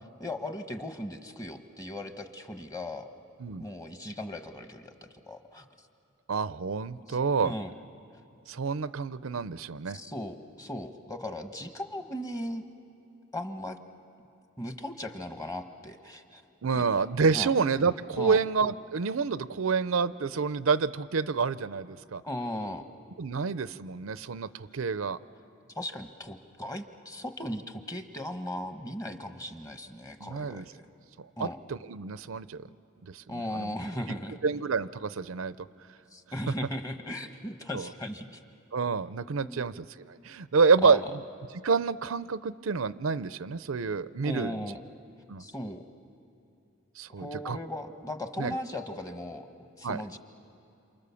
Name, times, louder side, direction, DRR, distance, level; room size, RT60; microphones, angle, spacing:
voice 1, 0.2-3.1 3.5-4.9 5.3-5.7 7.1-7.2 7.4-7.7 9.9-12.6 13.3-13.8 14.6-16.4 16.7-16.8 17.3-17.5 18.2-18.4 22.2-22.8 25.7-30.8 31.4-31.6 33.3-34.4 36.1-38.4 39.4-39.6 40.8-41.0 44.2-44.8 45.4-45.9 47.2-50.2, left 1 dB, 15° left, 7 dB, 1.2 m, -37 dB
voice 2, 6.3-7.5 8.5-10.0 16.6-22.2 23.2-25.2 30.2-30.7 31.2-32.7 33.1-33.7 34.4-35.6 37.7-37.9 38.7-41.2 41.6-44.5 45.3-45.4 47.0-47.6 48.4-48.6 49.8-50.0, right 5 dB, 75° right, 15 dB, 0.6 m, -28 dB
28.5 x 28.0 x 7.0 m, 2.7 s
head